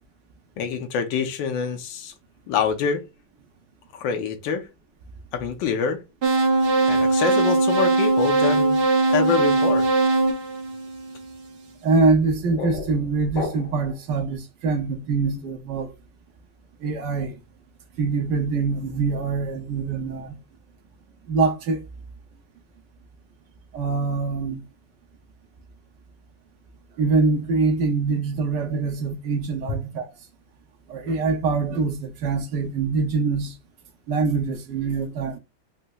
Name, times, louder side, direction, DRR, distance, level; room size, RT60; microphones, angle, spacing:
voice 1, 0.6-2.1 2.5-3.0 3.9-4.6 5.3-6.0 6.9-8.8 9.1-9.8 29.7-29.8, left 6 dB, 80° left, 1.4 m, -25 dB
sound 1, 6.2-11.3, right 3 dB, 55° right, 0.6 m, -20 dB
voice 2, 11.8-15.9 16.8-17.4 18.0-20.4 21.3-21.8 23.7-24.6 27.0-30.1 30.9-33.5 34.1-35.4, right 4 dB, 75° right, 1.2 m, -24 dB
sound 2, 12.1-14.0, left 4 dB, 65° left, 1.6 m, -34 dB
4.1 x 2.7 x 2.2 m
omnidirectional pair, 2.1 m